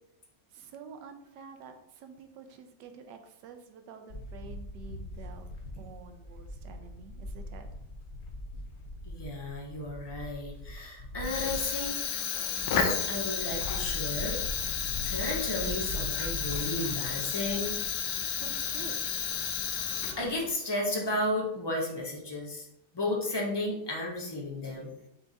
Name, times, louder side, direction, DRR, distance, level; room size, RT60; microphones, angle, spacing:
voice 1, 0.5-5.5 5.8-7.7 18.4-19.0, right 6 dB, 80° right, 6 dB, 1.2 m, -48 dB
sound 1, 4.1-17.9, left 1 dB, 50° left, 0.8 m, -42 dB
voice 2, 9.0-12.0 12.6-14.4 14.7-17.7 19.6-22.7 22.9-24.9, left 1 dB, 30° left, -2 dB, 0.5 m, -34 dB
Fire, 11.2-20.5, left 7 dB, 80° left, 1.2 m, -32 dB
5.8 x 2.4 x 3.9 m, 0.82 s
omnidirectional pair, 1.9 m